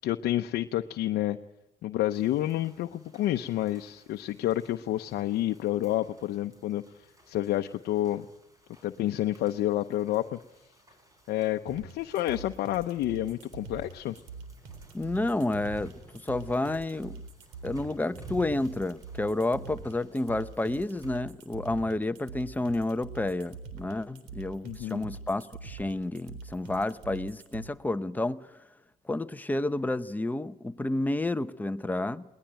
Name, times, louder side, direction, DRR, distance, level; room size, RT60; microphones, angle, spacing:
voice 1, 0.0-1.4 1.8-6.8 7.3-8.3 8.8-10.4 11.3-14.2 24.6-25.1, left 14 dB, 75° left, 0.8 m, -29 dB
sound 1, 2.1-21.2, right 2 dB, 20° right, 5.9 m, -55 dB
sound 2, 11.7-27.7, right 4 dB, 90° right, 3.8 m, -44 dB
voice 2, 14.9-17.2 17.6-28.5 29.0-32.2, left 2 dB, 10° left, 0.9 m, -30 dB
21.0 x 19.5 x 9.1 m
cardioid pair, 110°, 17 cm